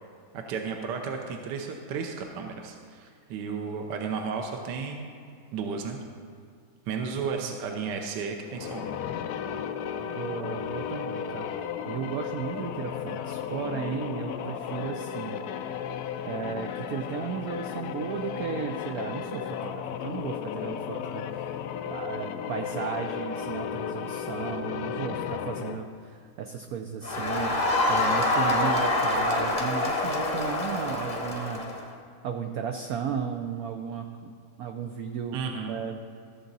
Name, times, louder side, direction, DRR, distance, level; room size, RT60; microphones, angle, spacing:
voice 1, 0.3-5.1 5.5-6.0 6.9-9.0 35.3-35.8, right 5 dB, 70° right, 3 dB, 1.2 m, -33 dB
sound 1, 8.4-25.9, left 8 dB, 80° left, 0.8 m, -34 dB
voice 2, 10.0-11.5 11.9-15.4 16.2-21.5 21.9-36.1, right 7 dB, 85° right, 5 dB, 0.8 m, -35 dB
Crowd, 27.0-31.8, left 2 dB, 35° left, 0.7 m, -26 dB
14.0 x 7.1 x 4.0 m, 2.3 s
omnidirectional pair, 2.1 m